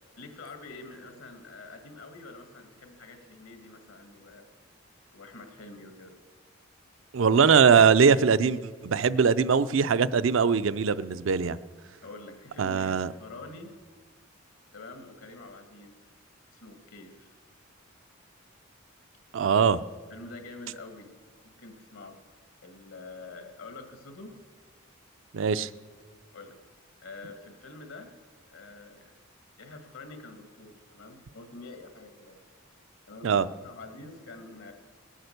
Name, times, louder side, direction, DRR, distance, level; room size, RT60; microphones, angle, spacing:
voice 1, 0.2-4.5 5.1-6.2 12.0-13.8 14.7-15.9 16.5-17.4 20.1-21.2 21.4-22.2 22.6-24.4 26.3-26.6 27.0-28.2 28.5-29.1 29.6-32.4 33.1-34.7, left 3 dB, 80° left, 5 dB, 1.9 m, -46 dB
voice 2, 7.1-11.6 12.6-13.1 19.3-19.8 25.3-25.7 33.2-33.5, right 6 dB, 65° right, 13 dB, 0.4 m, -21 dB
18.5 x 8.8 x 6.6 m, 1.5 s
head